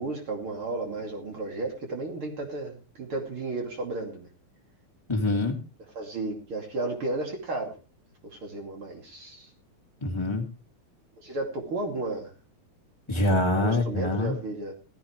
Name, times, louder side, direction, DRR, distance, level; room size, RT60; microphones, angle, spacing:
voice 1, 0.0-4.3 5.9-7.7 8.3-9.5 11.2-12.3 13.5-14.7, right 2 dB, 40° right, 2 dB, 3.1 m, -33 dB
voice 2, 5.1-5.6 10.0-10.5 13.1-14.4, left 2 dB, 10° left, 1 dB, 2.1 m, -25 dB
17.5 x 14.5 x 3.2 m, 0.32 s
omnidirectional pair, 4.1 m